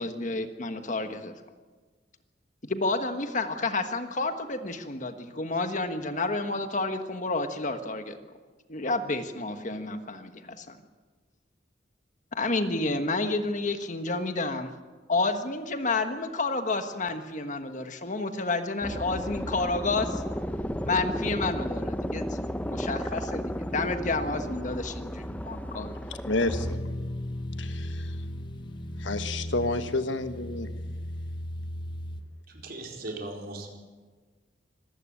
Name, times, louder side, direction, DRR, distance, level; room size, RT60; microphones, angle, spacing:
voice 1, 0.0-1.3 2.6-8.2 8.7-10.8 12.3-14.7 15.1-20.2 20.8-22.4 22.6-25.9, left 3 dB, 40° left, 8 dB, 1.4 m, -30 dB
sound 1, 18.8-26.8, equal, 10° left, 0.7 m, -33 dB
voice 2, 26.0-27.0 27.5-28.2 29.0-30.7, left 2 dB, 80° left, 9 dB, 1.4 m, -30 dB
sound 2, 26.5-32.2, left 1 dB, 25° left, 1.0 m, -35 dB
voice 3, 32.5-33.7, right 2 dB, 55° right, 1 dB, 4.4 m, -38 dB
26.0 x 14.5 x 9.0 m, 1.4 s
head